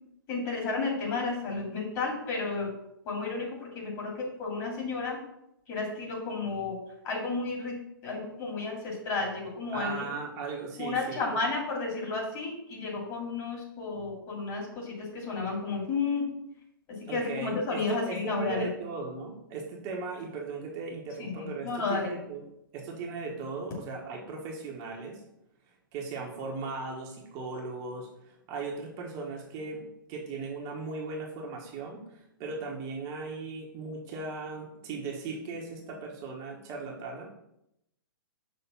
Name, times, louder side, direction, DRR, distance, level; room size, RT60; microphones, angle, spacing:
voice 1, 0.3-2.7 3.0-5.2 5.7-6.8 7.0-10.0 10.8-16.3 17.1-18.7 21.2-22.1, left 4 dB, 30° left, -2 dB, 2.6 m, -32 dB
voice 2, 9.7-11.4 17.1-22.4 22.7-25.2 25.7-37.3, right 4 dB, 30° right, -1 dB, 1.2 m, -38 dB
5.8 x 3.4 x 5.7 m, 0.81 s
figure-of-eight pair, 115°, 12 cm